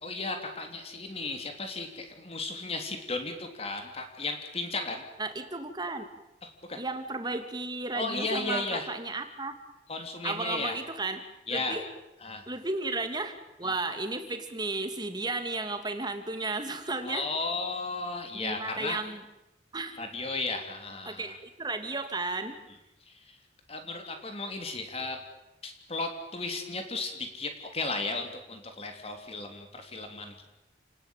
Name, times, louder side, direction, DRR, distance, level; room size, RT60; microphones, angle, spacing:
voice 1, 0.0-5.0 6.4-6.8 7.9-8.9 9.9-10.8 11.5-11.8 12.2-12.4 13.6-13.7 17.0-19.0 20.0-21.3 23.0-23.4 23.7-25.2 25.6-30.4, left 3 dB, 35° left, 5 dB, 3.4 m, -35 dB
voice 2, 5.2-6.1 6.8-9.5 10.2-11.2 11.5-11.9 12.5-17.3 18.3-19.2 19.7-20.0 21.1-22.6, right 3 dB, 25° right, 8 dB, 2.5 m, -34 dB
29.5 x 19.0 x 9.2 m, 0.92 s
head